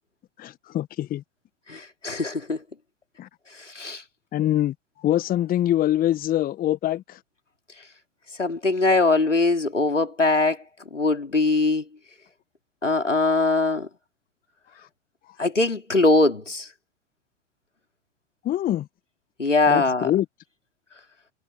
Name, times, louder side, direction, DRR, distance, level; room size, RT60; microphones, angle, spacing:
voice 1, 0.4-1.2 3.2-3.3 4.3-7.2 18.4-18.9 19.7-20.2, left 13 dB, 25° left, 1.4 m, -24 dB
voice 2, 1.7-2.6 3.7-4.0 8.4-10.6 10.9-11.8 12.8-13.9 15.4-16.7 19.4-20.1, left 3 dB, 85° left, 4.0 m, -21 dB
figure-of-eight pair, 95°, 36 cm